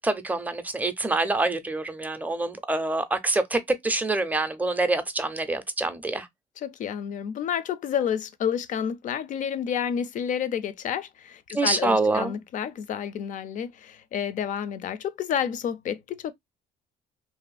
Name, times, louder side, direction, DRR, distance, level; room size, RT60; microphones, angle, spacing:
voice 1, 0.0-6.3 11.5-12.4, right 2 dB, 10° right, 0.4 m, -26 dB
voice 2, 6.6-16.3, left 8 dB, 50° left, 0.4 m, -30 dB
2.6 x 2.5 x 2.2 m
cardioid pair, 110°, 17 cm